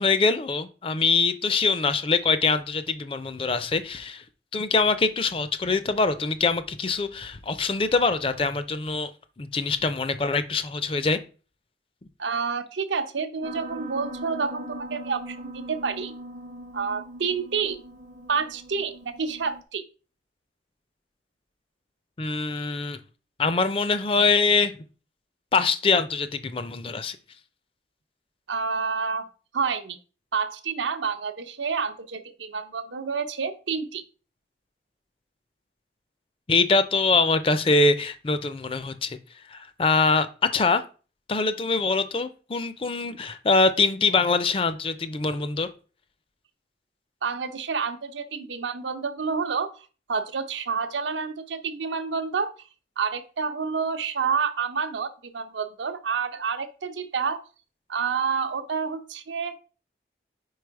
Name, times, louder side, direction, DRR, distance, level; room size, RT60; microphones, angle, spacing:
voice 1, 0.0-4.2 4.5-9.1 9.4-11.2 22.2-23.0 23.4-24.7 25.5-27.2 36.5-39.2 39.5-40.3 40.5-40.8 41.3-45.7, left 4 dB, 30° left, 0.4 m, -23 dB
voice 2, 12.2-16.1 16.7-17.8 18.3-19.8 28.5-29.3 29.5-30.0 30.3-34.0 47.2-52.5 53.0-57.4 57.9-59.5, right 5 dB, 85° right, 0.7 m, -29 dB
Piano, 13.4-19.6, right 1 dB, 45° right, 0.5 m, -40 dB
4.8 x 4.5 x 4.6 m
head